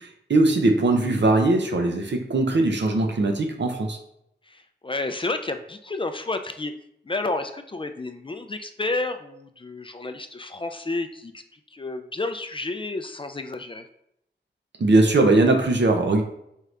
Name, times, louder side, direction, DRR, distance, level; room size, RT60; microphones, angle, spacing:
voice 1, 0.0-4.0 14.8-16.2, right 2 dB, 70° right, 3 dB, 0.7 m, -20 dB
voice 2, 4.5-6.7 7.1-13.8, left 2 dB, 30° left, 7 dB, 0.3 m, -31 dB
4.6 x 2.5 x 3.2 m, 0.77 s
wide cardioid pair, 65°, 19 cm